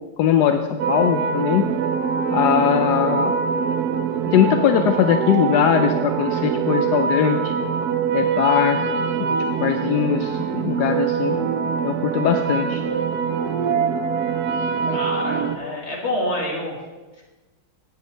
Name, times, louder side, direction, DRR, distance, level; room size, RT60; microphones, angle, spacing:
voice 1, 0.2-1.7 2.3-3.3 4.3-7.5 8.1-8.8 9.2-11.4 11.8-12.8, left 9 dB, 70° left, 6 dB, 1.0 m, -20 dB
sound 1, 0.8-15.6, right 6 dB, 70° right, 0.9 m, -24 dB
voice 2, 14.9-16.8 17.2-17.3, left 1 dB, 35° left, -3 dB, 2.5 m, -27 dB
16.0 x 8.2 x 3.3 m, 1.2 s
omnidirectional pair, 2.3 m